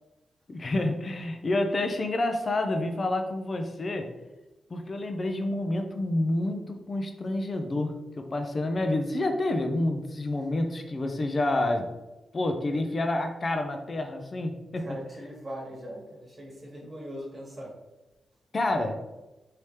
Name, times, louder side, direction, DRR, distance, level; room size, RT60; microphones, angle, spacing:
voice 1, 0.5-4.1 4.7-11.9 12.3-14.8 18.5-19.0, left 2 dB, 40° left, 5 dB, 0.5 m, -28 dB
voice 2, 14.7-17.7, equal, 30° right, -4 dB, 1.3 m, -40 dB
3.2 x 2.8 x 3.2 m, 1.0 s
cardioid pair, 70°, 0 cm